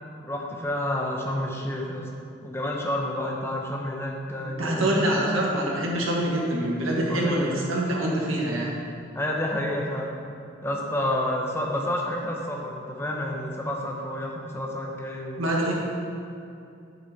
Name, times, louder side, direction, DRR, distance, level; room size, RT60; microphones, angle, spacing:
voice 1, 0.2-2.1 2.4-5.0 7.1-7.6 9.1-10.1 10.6-15.4, left 1 dB, 10° left, -1 dB, 0.8 m, -29 dB
voice 2, 4.6-8.7 15.4-15.7, right 1 dB, 90° right, -3 dB, 1.6 m, -25 dB
7.8 x 6.7 x 4.3 m, 2.6 s
head